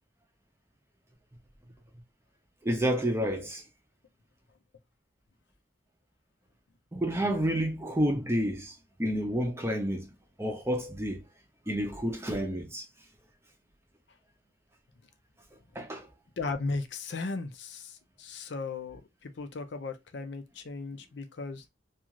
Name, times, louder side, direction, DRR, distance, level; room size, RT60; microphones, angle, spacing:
voice 1, 2.6-3.6 6.9-8.7 9.0-10.1 10.4-11.2 11.7-12.8 15.8-16.1, equal, 15° right, 0.6 m, -29 dB
voice 2, 16.4-21.7, left 3 dB, 65° left, 0.5 m, -36 dB
2.5 x 2.4 x 2.9 m
head